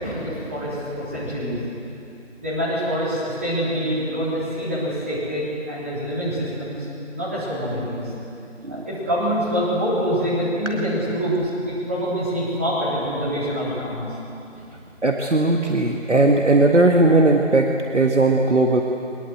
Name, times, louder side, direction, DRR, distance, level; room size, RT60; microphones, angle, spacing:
voice 1, 0.0-1.6 2.4-6.8 7.1-8.1 8.7-11.4 11.6-14.1 14.6-14.7, equal, 10° right, -10 dB, 3.7 m, -25 dB
voice 2, 15.0-18.8, right 2 dB, 65° right, 2 dB, 1.9 m, -18 dB
22.5 x 21.0 x 8.0 m, 2.8 s
figure-of-eight pair, 175°, 38 cm